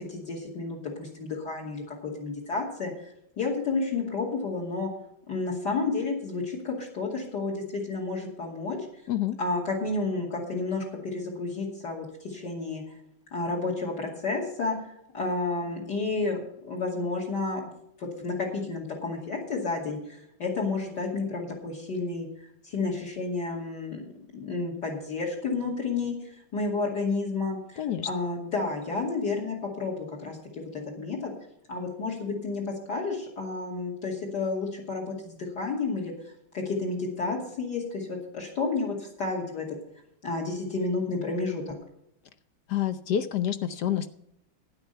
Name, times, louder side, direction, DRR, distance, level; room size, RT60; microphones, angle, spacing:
voice 1, 0.1-3.1 3.4-4.9 5.3-8.8 9.4-12.8 13.3-14.8 15.1-17.6 18.0-22.3 22.6-24.0 24.3-31.3 31.7-36.1 36.5-39.7 40.2-41.7, left 3 dB, 50° left, 2 dB, 3.0 m, -31 dB
voice 2, 27.8-28.1 42.7-44.1, left 10 dB, 65° left, 11 dB, 1.0 m, -28 dB
12.5 x 9.9 x 5.6 m, 0.76 s
omnidirectional pair, 2.4 m